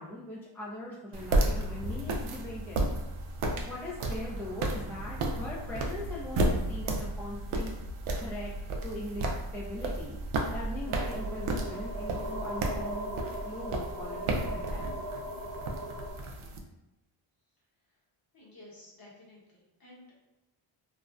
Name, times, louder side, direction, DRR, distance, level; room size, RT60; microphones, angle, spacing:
voice 1, 0.0-2.9 3.6-7.7 8.2-8.5 8.8-10.2 10.5-13.1 13.4-14.9, left 1 dB, 5° left, -5 dB, 0.3 m, -40 dB
sound 1, 1.1-16.6, right 1 dB, 75° right, 0.5 m, -33 dB
sound 2, 10.9-16.1, right 1 dB, 40° right, 0.9 m, -39 dB
voice 2, 18.3-20.1, left 1 dB, 45° left, -4 dB, 1.0 m, -53 dB
2.5 x 2.0 x 2.4 m, 0.96 s
cardioid pair, 80°, 50 cm